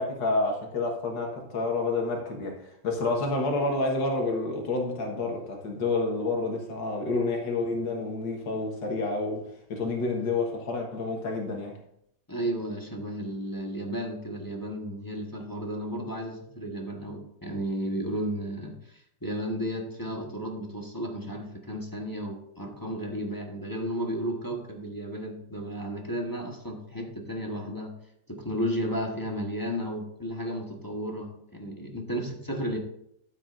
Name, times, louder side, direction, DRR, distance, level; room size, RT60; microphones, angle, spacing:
voice 1, 0.0-9.4 9.7-11.8, left 3 dB, 85° left, 2.2 m, -29 dB
voice 2, 12.3-27.9 28.3-32.8, equal, 15° left, 1.1 m, -33 dB
13.0 x 7.7 x 2.6 m
omnidirectional pair, 2.0 m